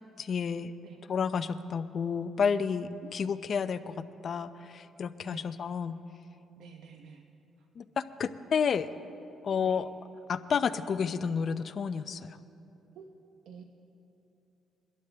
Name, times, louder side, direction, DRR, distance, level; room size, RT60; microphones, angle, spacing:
voice 1, 0.2-0.7 1.1-6.0 7.8-8.9 9.4-9.9 10.3-12.4, left 6 dB, 55° left, 12 dB, 0.6 m, -31 dB
voice 2, 6.6-7.2 9.6-9.8 12.9-13.1 13.5-13.6, right 7 dB, 80° right, 4 dB, 0.8 m, -49 dB
23.5 x 12.0 x 3.4 m, 2.9 s
cardioid pair, 90°, 0 cm